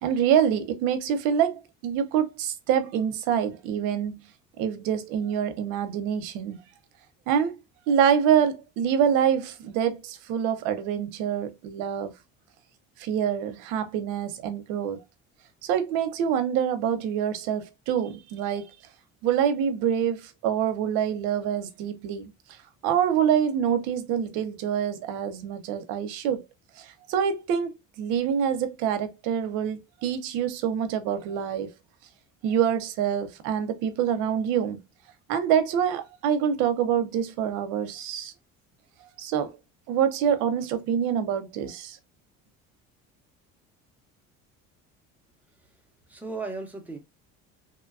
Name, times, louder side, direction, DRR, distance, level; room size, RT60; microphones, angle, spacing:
voice 1, 0.0-4.2 4.6-6.6 7.3-7.6 7.9-12.1 13.0-15.0 15.6-18.7 19.2-22.3 22.8-26.4 26.8-31.7 32.4-34.8 35.3-38.3 39.2-39.5 39.9-42.0, right 8 dB, 85° right, 0.7 m, -26 dB
voice 2, 45.5-47.0, right 3 dB, 5° right, 0.7 m, -37 dB
2.9 x 2.2 x 2.4 m
cardioid pair, 135°, 29 cm